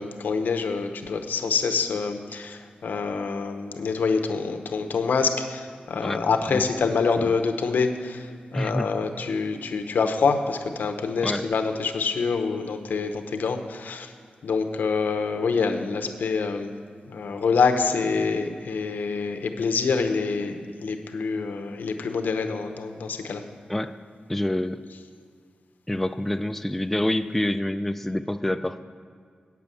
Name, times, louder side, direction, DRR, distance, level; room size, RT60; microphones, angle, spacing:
voice 1, 0.0-14.1 14.4-16.7 17.1-23.4, left 5 dB, 90° left, 6 dB, 0.8 m, -26 dB
voice 2, 8.5-8.9 11.2-11.5 23.7-24.0 24.3-24.8 25.9-28.8, left 1 dB, 5° left, 8 dB, 0.3 m, -27 dB
9.1 x 6.9 x 7.6 m, 2.1 s
wide cardioid pair, 110°, 3 cm